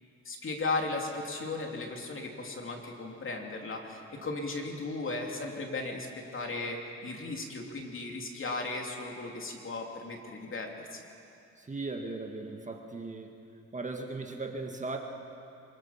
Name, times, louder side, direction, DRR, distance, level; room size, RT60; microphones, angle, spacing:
voice 1, 0.2-11.0, left 3 dB, 45° left, 1 dB, 3.0 m, -36 dB
voice 2, 11.6-13.4 13.7-15.0, right 3 dB, 25° right, 3 dB, 1.8 m, -37 dB
24.0 x 21.5 x 5.8 m, 2.7 s
cardioid pair, 90°, 30 cm